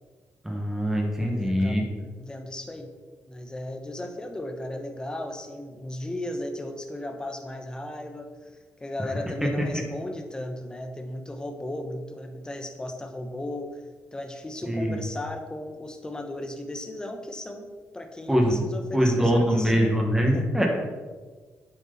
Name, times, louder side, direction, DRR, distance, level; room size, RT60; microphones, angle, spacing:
voice 1, 0.4-1.8 9.4-9.6 14.6-15.0 18.3-20.7, equal, 5° right, 0 dB, 2.0 m, -23 dB
voice 2, 1.2-2.9 3.3-8.5 8.8-13.8 14.1-17.6 17.9-19.9 20.3-20.7, left 1 dB, 15° left, 5 dB, 1.3 m, -36 dB
9.0 x 8.2 x 4.3 m, 1.4 s
cardioid pair, 115°, 5 cm